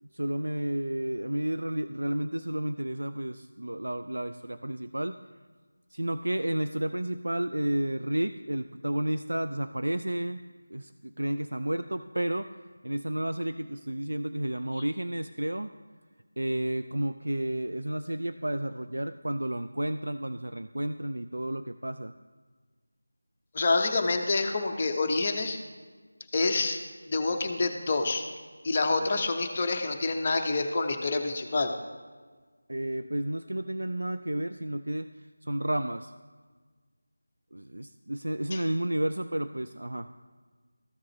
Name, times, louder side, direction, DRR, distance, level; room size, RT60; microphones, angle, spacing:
voice 1, 0.0-5.2 5.9-10.4 10.7-12.5 12.8-15.7 16.4-22.1 32.7-35.1 35.4-36.1 37.5-40.1, right 1 dB, 70° right, 10 dB, 0.3 m, -31 dB
voice 2, 23.5-25.6 26.3-26.8 27.1-28.2 28.6-31.7 38.5-38.6, left 3 dB, 25° left, 4 dB, 0.6 m, -27 dB
14.0 x 4.9 x 3.0 m, 1.4 s
figure-of-eight pair, 165°, 0 cm